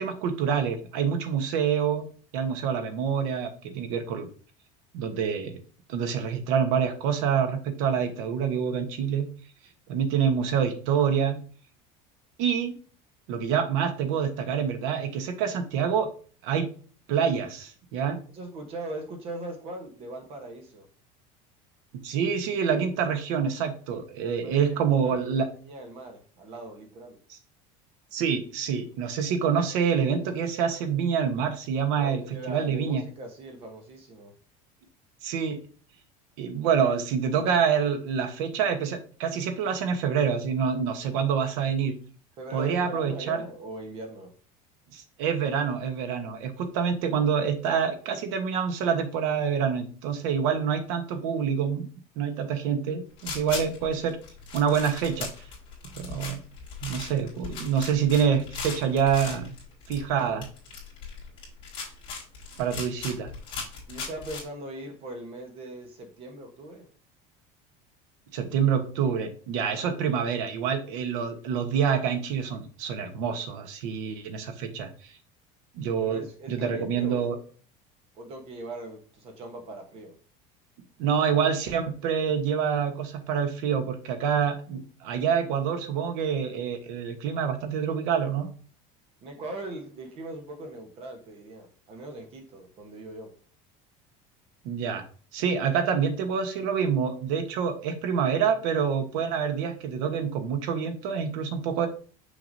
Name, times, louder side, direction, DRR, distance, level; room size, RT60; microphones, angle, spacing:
voice 1, 0.0-2.1 2.3-4.3 4.9-5.6 5.9-9.3 9.9-11.4 12.4-12.7 13.3-16.1 16.4-16.7 17.1-18.2 22.0-25.5 27.3-27.4 28.1-32.2 32.5-33.0 35.2-35.6 36.4-41.9 42.5-43.4 44.9-51.9 52.2-54.2 54.5-55.3 56.0-56.4 56.8-59.5 59.9-60.5 62.6-63.3 68.3-74.9 75.7-77.3 81.0-88.5 94.6-95.0 95.3-101.9, right 7 dB, 70° right, 8 dB, 1.1 m, -26 dB
voice 2, 18.3-20.9 24.2-25.3 25.6-27.2 31.9-34.3 42.4-44.3 63.9-66.9 69.7-70.4 76.0-77.3 78.1-80.1 89.2-93.3, right 1 dB, 35° right, 5 dB, 1.1 m, -40 dB
sound 1, 53.2-64.4, left 4 dB, 30° left, 2.6 m, -38 dB
6.1 x 5.8 x 2.7 m, 0.42 s
cardioid pair, 175°, 17 cm